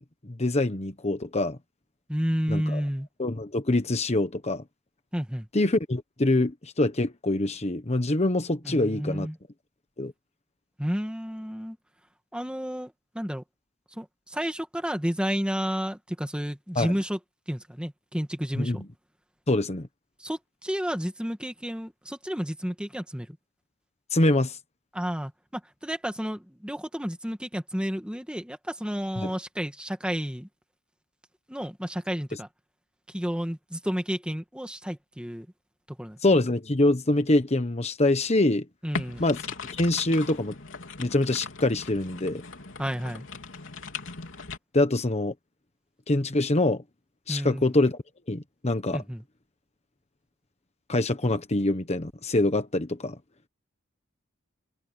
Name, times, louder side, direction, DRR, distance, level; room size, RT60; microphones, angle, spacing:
voice 1, 0.2-1.6 2.5-2.8 3.2-4.6 5.5-9.3 10.0-10.1 16.7-16.9 18.5-18.8 19.5-19.9 24.1-24.6 29.2-29.3 36.2-38.6 39.2-40.6 41.0-42.4 44.7-45.3 46.1-46.8 47.3-48.0 48.3-49.0 50.9-53.2, left 2 dB, 35° left, 1.2 m, -25 dB
voice 2, 2.1-3.1 5.1-5.5 8.6-9.4 10.8-11.8 12.3-13.4 14.0-17.2 17.5-18.8 20.2-23.4 24.9-30.5 31.5-32.5 33.1-35.5 36.0-36.4 38.8-39.2 42.8-43.3 47.3-47.8 48.9-49.2, equal, 5° right, 1.9 m, -31 dB
sound 1, 38.9-44.6, left 4 dB, 70° left, 4.0 m, -38 dB
head